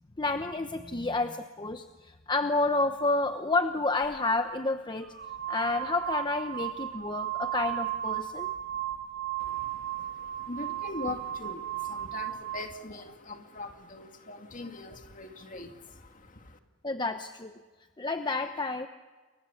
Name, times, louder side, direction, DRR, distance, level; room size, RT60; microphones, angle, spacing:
voice 1, 0.2-5.1 5.5-8.5 16.8-17.6 18.0-18.9, left 3 dB, 20° left, 8 dB, 0.9 m, -30 dB
sound 1, 4.0-4.2 5.0-12.7, right 12 dB, 60° right, 1.9 m, -35 dB
voice 2, 9.4-16.6, left 2 dB, 40° left, 5 dB, 2.2 m, -42 dB
29.5 x 23.0 x 7.1 m, 1.3 s
head